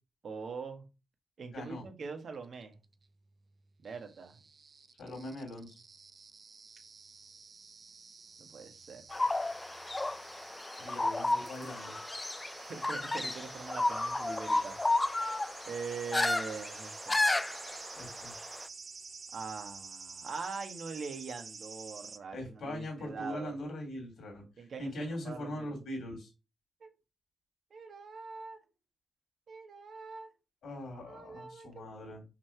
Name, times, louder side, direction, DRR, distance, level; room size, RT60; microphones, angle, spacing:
voice 1, 0.2-0.8 1.4-2.8 3.8-4.4 8.4-9.0 12.6-14.8 15.7-17.3 19.3-23.5 24.6-25.8 26.8-26.9 27.7-28.6 29.5-30.3 30.9-31.8, right 5 dB, 60° right, 1.5 m, -43 dB
voice 2, 1.5-1.8 5.0-5.8 10.8-12.0 17.9-18.3 22.3-26.3 30.6-32.2, left 1 dB, 80° left, 2.8 m, -41 dB
sound 1, 2.4-22.2, right 5 dB, 45° right, 0.6 m, -50 dB
sound 2, 9.1-18.6, left 2 dB, 20° left, 0.3 m, -33 dB
5.9 x 4.7 x 4.6 m
cardioid pair, 105°, 0 cm